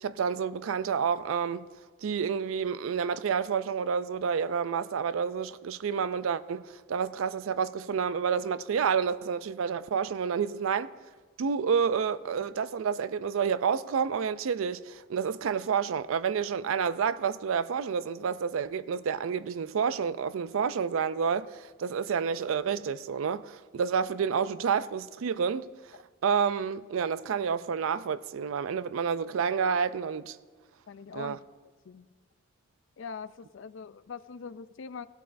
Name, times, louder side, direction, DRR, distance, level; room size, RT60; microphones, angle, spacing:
voice 1, 0.0-1.7 2.0-10.9 11.4-25.7 26.2-30.4 31.1-31.4, right 6 dB, 75° right, 0.4 m, -29 dB
voice 2, 30.9-31.4 31.9-32.1 33.0-35.1, left 5 dB, 65° left, 0.4 m, -42 dB
16.5 x 12.0 x 2.6 m
head